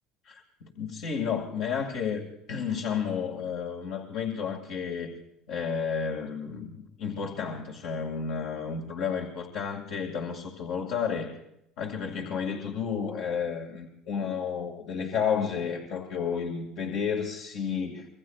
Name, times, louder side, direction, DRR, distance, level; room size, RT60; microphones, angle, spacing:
voice 1, 0.3-5.1 5.5-11.3 11.8-18.1, left 6 dB, 75° left, 0 dB, 2.3 m, -32 dB
26.5 x 21.5 x 2.5 m, 0.80 s
supercardioid pair, 100°, 0 cm